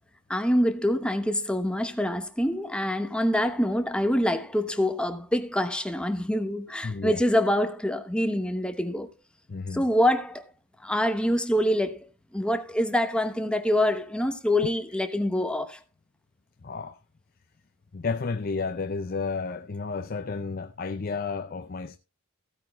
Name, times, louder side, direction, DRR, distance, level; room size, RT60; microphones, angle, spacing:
voice 1, 0.3-9.1 9.7-10.4 10.8-12.1 12.3-15.8, left 1 dB, 5° left, 0.9 m, -25 dB
voice 2, 6.8-7.2 9.5-9.8 16.6-17.0 17.9-22.0, left 4 dB, 45° left, 0.6 m, -32 dB
15.5 x 8.9 x 3.1 m
head